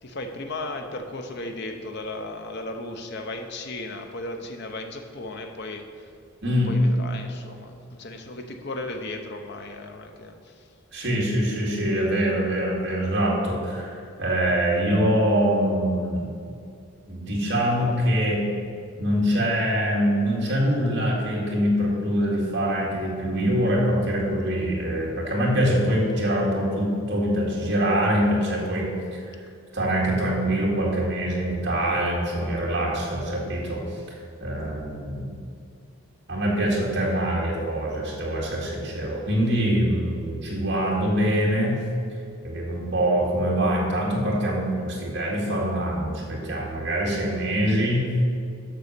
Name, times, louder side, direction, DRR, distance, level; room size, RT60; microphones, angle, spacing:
voice 1, 0.0-5.9 6.7-10.7, left 2 dB, 50° left, 5 dB, 0.7 m, -35 dB
voice 2, 6.4-6.8 10.9-16.3 17.1-18.4 19.0-29.3 29.7-34.0 34.4-35.3 36.3-41.8 42.4-48.1, equal, 50° right, -3 dB, 2.1 m, -24 dB
6.8 x 6.1 x 6.7 m, 2.3 s
head